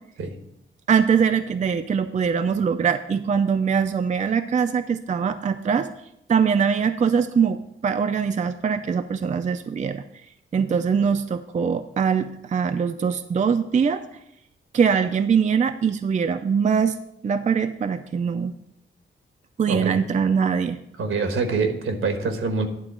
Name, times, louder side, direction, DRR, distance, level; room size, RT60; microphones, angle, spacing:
voice 1, 0.9-5.9 6.3-10.0 10.5-14.0 14.7-17.0 17.2-18.5 19.6-20.8, right 6 dB, 35° right, 8 dB, 0.4 m, -22 dB
voice 2, 21.0-22.7, right 4 dB, 85° right, 6 dB, 1.3 m, -25 dB
10.5 x 3.9 x 7.3 m, 0.81 s
wide cardioid pair, 115°, 21 cm